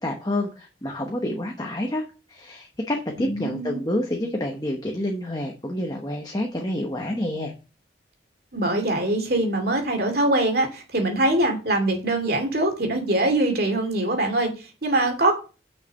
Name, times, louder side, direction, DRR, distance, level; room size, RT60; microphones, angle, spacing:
voice 1, 0.0-7.5, left 1 dB, 20° left, 1 dB, 1.0 m, -28 dB
voice 2, 3.2-3.8 8.5-15.3, right 1 dB, 50° right, 4 dB, 2.5 m, -23 dB
6.5 x 5.8 x 6.6 m, 0.33 s
head